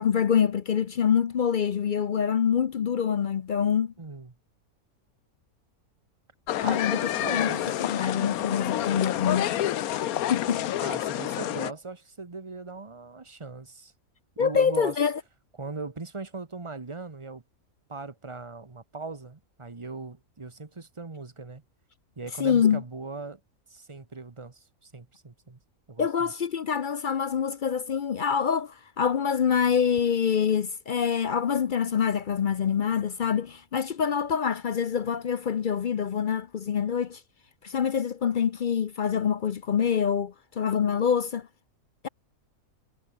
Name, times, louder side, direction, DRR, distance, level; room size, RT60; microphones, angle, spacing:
voice 1, 0.0-3.9 6.6-9.6 10.3-10.8 14.4-15.2 22.4-22.8 26.0-37.2 37.6-41.5, left 7 dB, 55° left, 0.5 m, -26 dB
voice 2, 4.0-4.3 6.6-7.6 10.8-13.9 14.4-15.0 15.6-17.4 17.9-21.6 22.2-23.4 23.7-25.6 25.9-26.3, right 3 dB, 20° right, 1.2 m, -39 dB
sound 1, 6.5-11.7, left 12 dB, 80° left, 1.2 m, -28 dB
omnidirectional pair, 1.5 m